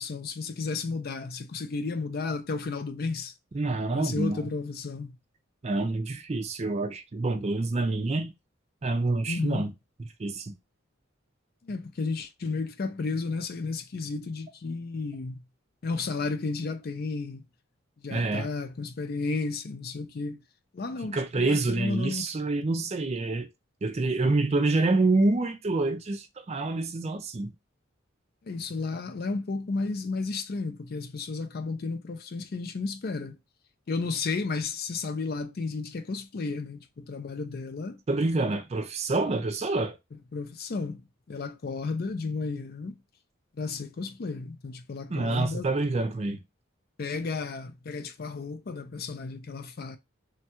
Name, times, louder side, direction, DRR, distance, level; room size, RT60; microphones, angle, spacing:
voice 1, 0.0-3.3 3.9-5.1 9.3-9.6 11.6-15.4 15.8-17.4 18.0-20.4 20.7-22.2 28.4-33.4 33.9-38.0 40.3-41.0 41.3-43.0 43.6-45.7 47.0-50.0, left 4 dB, 50° left, 0.4 m, -33 dB
voice 2, 3.5-4.4 5.6-8.3 8.8-9.7 10.2-10.5 18.1-18.5 21.1-23.5 23.8-27.5 38.1-40.0 45.1-46.4, right 2 dB, 30° right, 0.4 m, -27 dB
3.2 x 2.3 x 2.8 m
head